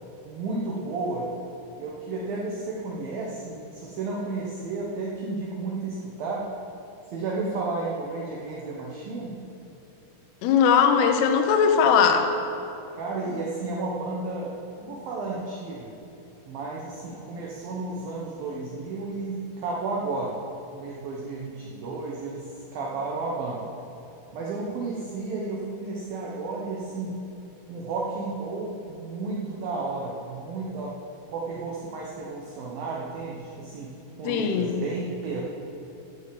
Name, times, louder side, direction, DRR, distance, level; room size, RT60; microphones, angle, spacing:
voice 1, 0.3-1.3 1.8-6.5 7.1-9.4 12.9-15.9 16.5-20.4 20.7-23.7 24.3-27.2 27.7-31.0 31.3-35.4, right 3 dB, 70° right, -3 dB, 2.2 m, -32 dB
voice 2, 10.4-12.3 34.3-34.8, left 6 dB, 75° left, 5 dB, 2.5 m, -20 dB
16.0 x 6.4 x 7.7 m, 2.8 s
omnidirectional pair, 5.7 m